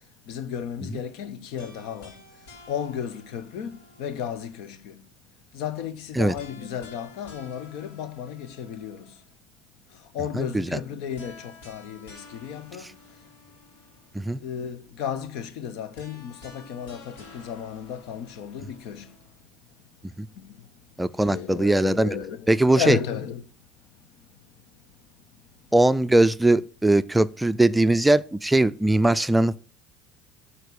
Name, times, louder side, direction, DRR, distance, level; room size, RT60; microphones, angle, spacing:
voice 1, 0.3-2.1 2.7-3.7 4.0-5.0 5.5-9.0 10.1-12.9 14.4-19.1 21.3-23.4, left 8 dB, 75° left, 1.0 m, -33 dB
sound 1, 1.6-4.7 6.3-9.3 11.1-14.3 15.9-19.4, left 3 dB, 90° left, 3.3 m, -50 dB
voice 2, 21.0-22.1 22.5-23.0 25.7-29.6, right 1 dB, 10° right, 0.4 m, -20 dB
9.1 x 4.4 x 6.8 m
supercardioid pair, 90°, 0 cm